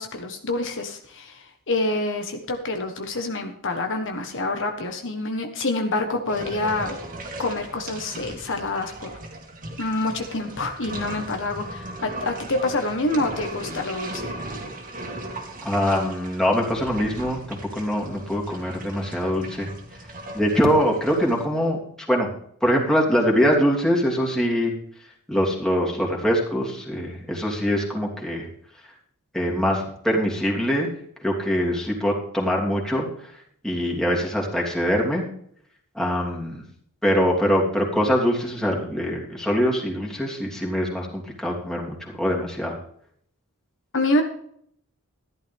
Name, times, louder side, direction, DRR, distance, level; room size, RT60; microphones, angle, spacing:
voice 1, 0.0-7.0 7.4-9.1 9.8-14.3 43.9-44.2, left 2 dB, 60° left, 4 dB, 1.4 m, -27 dB
sound 1, 6.3-21.4, right 1 dB, 40° right, 2.2 m, -37 dB
voice 2, 15.6-19.7 20.3-21.8 22.1-22.3 22.6-24.7 25.3-28.5 29.3-30.9 31.2-33.3 33.6-35.2 35.9-36.7 37.0-42.8, equal, 5° left, -2 dB, 3.0 m, -23 dB
14.0 x 11.5 x 3.6 m, 0.65 s
head